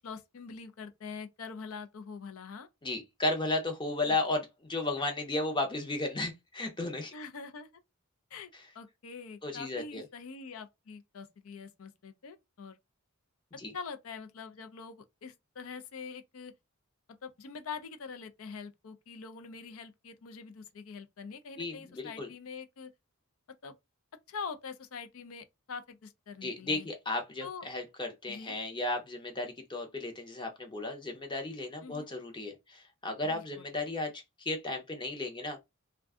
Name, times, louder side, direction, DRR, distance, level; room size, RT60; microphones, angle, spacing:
voice 1, 0.0-2.7 4.0-4.2 7.1-7.8 8.3-12.8 13.7-16.5 17.2-22.9 23.6-23.8 24.3-26.9 27.4-27.7 28.3-28.6 31.8-32.1 33.3-33.7, left 5 dB, 70° left, 0.5 m, -44 dB
voice 2, 2.8-7.1 9.4-10.0 13.6-13.7 21.6-22.3 26.4-35.6, left 2 dB, 20° left, 0.6 m, -34 dB
2.5 x 2.2 x 3.5 m
head